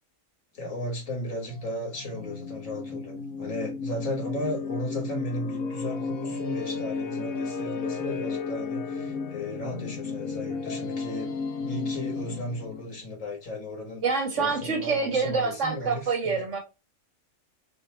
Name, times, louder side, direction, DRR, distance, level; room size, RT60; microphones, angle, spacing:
voice 1, 0.5-11.3 11.7-14.0 14.4-16.4, left 1 dB, 70° left, 2.0 m, -35 dB
sound 1, 1.5-12.9, left 4 dB, 90° left, 1.1 m, -33 dB
voice 2, 14.0-16.6, right 4 dB, 60° right, 1.6 m, -26 dB
4.3 x 2.9 x 4.2 m
omnidirectional pair, 1.4 m